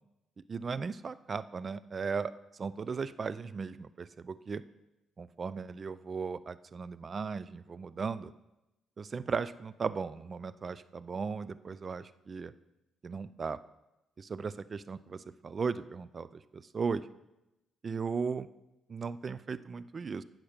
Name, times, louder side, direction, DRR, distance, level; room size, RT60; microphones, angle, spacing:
voice 1, 0.5-2.3 2.6-4.6 5.2-8.3 9.0-12.5 13.0-13.6 14.2-17.1 17.8-18.5 18.9-20.2, right 5 dB, 40° right, 16 dB, 0.5 m, -36 dB
15.5 x 6.0 x 5.1 m, 0.94 s
cardioid pair, 90°, 0 cm